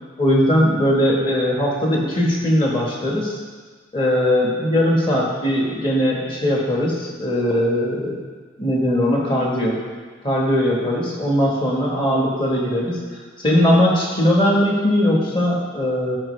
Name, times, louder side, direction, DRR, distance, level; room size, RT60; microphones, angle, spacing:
voice 1, 0.2-3.4 3.9-8.2 8.6-9.8 10.2-13.0 13.4-16.2, left 1 dB, 25° left, -3 dB, 1.4 m, -19 dB
13.5 x 4.6 x 3.3 m, 1.5 s
head